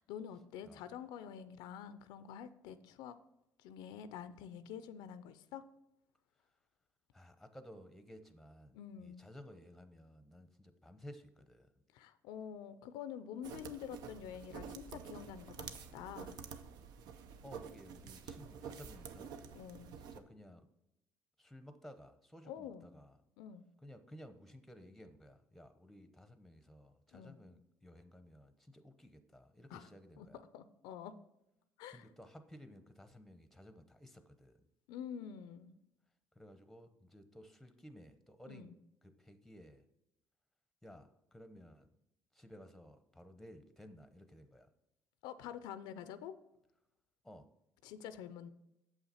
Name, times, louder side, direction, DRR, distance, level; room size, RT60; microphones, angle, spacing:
voice 1, 0.0-3.2 3.6-5.6 8.7-9.2 11.9-16.4 19.5-19.9 22.5-22.9 23.4-23.7 27.1-27.4 29.7-29.9 30.2-30.3 30.5-31.1 31.8-32.1 34.9-35.8 38.5-38.7 45.2-46.3 47.8-48.5, left 8 dB, 90° left, 13 dB, 0.5 m, -47 dB
voice 2, 7.1-11.7 17.4-19.4 20.0-20.7 21.4-23.2 23.8-30.4 31.9-34.6 36.3-38.7 39.0-39.8 40.8-41.9 42.3-44.7 47.2-47.5, equal, ahead, 9 dB, 0.8 m, -56 dB
sound 1, 13.4-20.2, right 7 dB, 75° right, 0.6 m, -49 dB
7.2 x 5.7 x 4.3 m, 0.87 s
cardioid pair, 100°, 7 cm